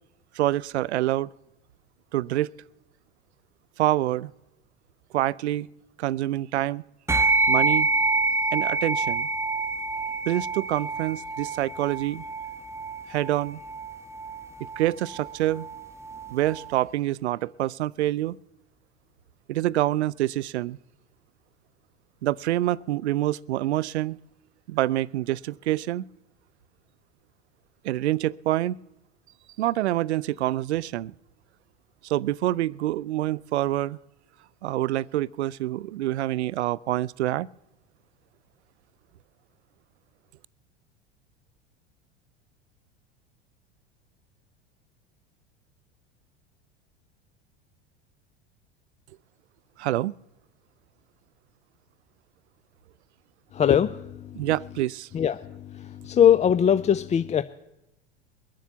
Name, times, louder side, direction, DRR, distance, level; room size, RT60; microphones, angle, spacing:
voice 1, 0.4-1.3 2.1-2.5 3.8-4.3 5.1-5.7 6.0-6.8 7.5-7.9 8.5-9.3 10.3-12.2 13.1-13.6 14.8-15.7 16.3-18.4 19.5-20.8 22.2-24.2 24.7-26.0 27.8-28.8 29.6-31.1 32.0-34.0 34.6-37.5 49.8-50.1 54.3-55.1, right 15 dB, 85° right, 0.5 m, -26 dB
sound 1, 7.1-16.8, right 3 dB, 10° right, 1.2 m, -27 dB
voice 2, 53.5-54.1 55.1-57.4, left 9 dB, 20° left, 0.5 m, -21 dB
22.0 x 7.6 x 7.0 m
hypercardioid pair, 90°, 32 cm